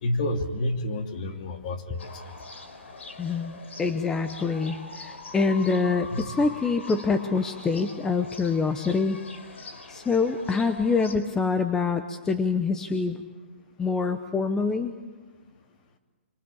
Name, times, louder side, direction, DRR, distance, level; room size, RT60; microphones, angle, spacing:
voice 1, 0.0-2.3 6.1-6.3, left 1 dB, 40° left, 5 dB, 2.9 m, -30 dB
sound 1, 2.0-11.2, left 3 dB, 85° left, 4.5 m, -43 dB
voice 2, 3.2-9.2 9.9-13.2 13.8-14.9, left 4 dB, 10° left, 8 dB, 0.8 m, -25 dB
26.0 x 24.5 x 8.5 m, 1.4 s
hypercardioid pair, 160°, 6 cm